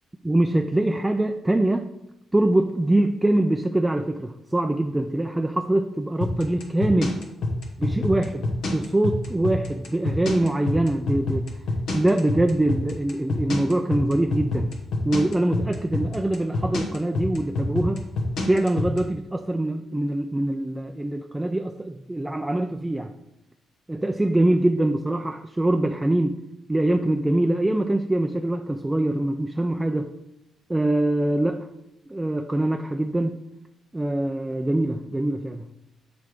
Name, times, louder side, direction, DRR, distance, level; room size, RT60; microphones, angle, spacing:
voice 1, 0.2-1.9 2.3-7.2 7.8-11.5 11.9-14.7 15.0-18.1 18.5-23.1 23.9-26.4 26.7-30.1 30.7-31.7 32.1-33.4 33.9-35.7, right 1 dB, 15° right, 5 dB, 0.4 m, -23 dB
sound 1, 6.2-19.0, left 2 dB, 70° left, 1.1 m, -26 dB
7.5 x 3.4 x 4.6 m, 0.91 s
hypercardioid pair, 40°, 0 cm